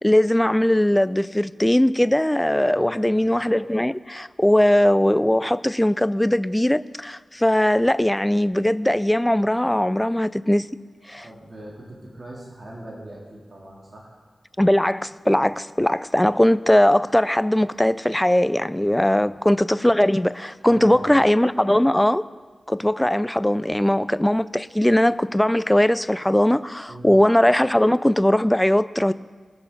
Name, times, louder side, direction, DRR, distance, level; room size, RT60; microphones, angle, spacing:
voice 1, 0.0-10.7 11.1-11.3 14.6-22.3 22.7-29.1, left 1 dB, 10° left, 0.4 m, -20 dB
voice 2, 2.7-3.3 11.2-14.2 19.1-19.4 20.7-21.1 26.9-27.1, right 1 dB, 50° right, 3.3 m, -40 dB
20.0 x 7.0 x 5.3 m
cardioid pair, 45°, 0 cm